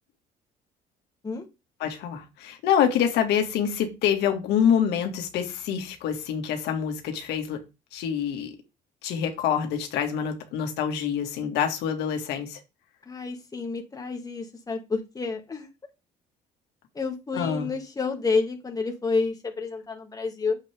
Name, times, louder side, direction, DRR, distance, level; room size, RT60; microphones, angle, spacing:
voice 1, 1.8-7.6 7.9-8.5 9.0-12.6 17.3-17.7, left 8 dB, 85° left, 2.4 m, -26 dB
voice 2, 13.1-15.7 16.9-20.6, left 4 dB, 20° left, 2.6 m, -29 dB
9.1 x 8.1 x 3.8 m
cardioid pair, 110°, 17 cm